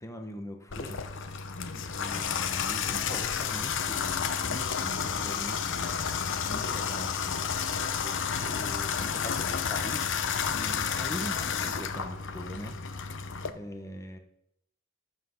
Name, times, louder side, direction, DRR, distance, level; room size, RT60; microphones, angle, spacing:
voice 1, 0.0-1.4 1.9-6.0 6.5-7.8 8.0-8.1 8.4-10.2 10.5-13.2 13.5-14.2, equal, 15° left, 0.8 m, -42 dB
Water tap faucet / Bathtub (filling or washing), 0.7-13.5, left 6 dB, 55° left, 0.7 m, -31 dB
voice 2, 1.5-2.0 5.7-6.4, left 3 dB, 80° left, 1.1 m, -46 dB
13.5 x 5.8 x 5.7 m
head